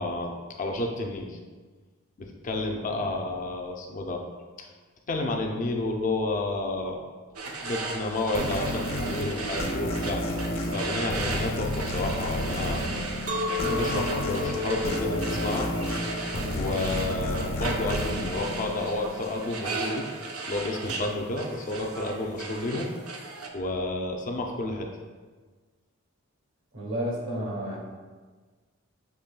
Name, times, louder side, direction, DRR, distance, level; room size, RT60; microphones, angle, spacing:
voice 1, 0.0-1.4 2.2-4.2 4.6-4.7 5.1-7.0 7.6-10.2 10.7-13.2 13.7-15.7 16.5-20.1 20.5-22.9 23.5-24.9, left 2 dB, 35° left, 2 dB, 0.4 m, -31 dB
sound 1, 7.3-23.5, right 3 dB, 85° right, 0.5 m, -36 dB
sound 2, 8.3-19.5, left 1 dB, 80° left, 0.8 m, -32 dB
Chink clink, 13.3-18.4, left 3 dB, 35° right, 0.3 m, -34 dB
voice 2, 26.7-27.8, equal, 60° right, -3 dB, 1.2 m, -31 dB
6.8 x 3.0 x 2.2 m, 1.4 s
head